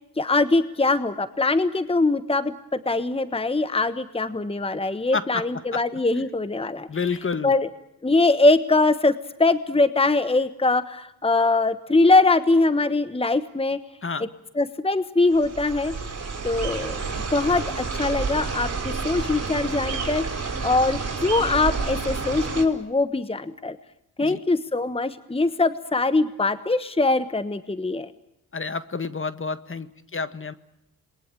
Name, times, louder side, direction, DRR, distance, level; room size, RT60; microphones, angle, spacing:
voice 1, 0.2-6.9 7.4-7.7 8.0-13.8 14.6-15.9 16.4-23.8 24.2-28.1, left 3 dB, 15° left, 13 dB, 1.3 m, -22 dB
voice 2, 5.1-5.8 6.9-7.5 14.0-14.2 24.2-24.4 28.5-30.5, left 4 dB, 35° left, 13 dB, 1.6 m, -29 dB
sound 1, 15.3-22.7, right 4 dB, 40° right, 5.7 m, -30 dB
27.0 x 21.5 x 9.0 m, 0.84 s
supercardioid pair, 60°, 37 cm